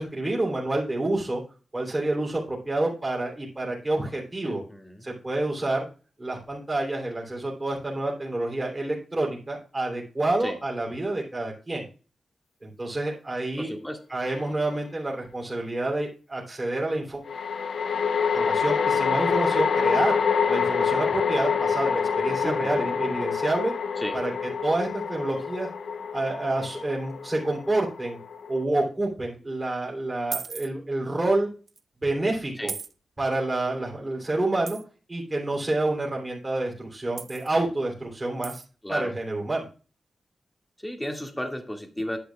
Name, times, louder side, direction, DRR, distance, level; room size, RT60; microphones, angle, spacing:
voice 1, 0.0-1.4 1.7-4.6 5.0-5.9 6.2-11.9 12.6-13.7 14.1-17.2 18.3-20.2 20.5-23.7 24.1-24.3 24.6-25.7 26.1-28.2 28.5-31.5 32.0-32.7 33.2-34.8 35.1-38.6 38.9-39.6, right 2 dB, 25° right, -3 dB, 3.1 m, -28 dB
voice 2, 4.4-5.0 10.4-10.6 13.6-14.0 22.4-22.8 24.0-24.2 32.6-32.7 38.8-39.1 40.8-42.2, equal, 10° left, 3 dB, 1.9 m, -34 dB
sound 1, 14.3-14.4 17.3-28.6, left 6 dB, 80° left, 0.6 m, -26 dB
sound 2, 30.3-30.7 31.7-31.8 32.7-32.9 34.7-34.8 37.2-37.5 38.4-38.7, right 5 dB, 65° right, 0.6 m, -35 dB
10.0 x 8.3 x 2.3 m, 0.35 s
cardioid pair, 75°, 0 cm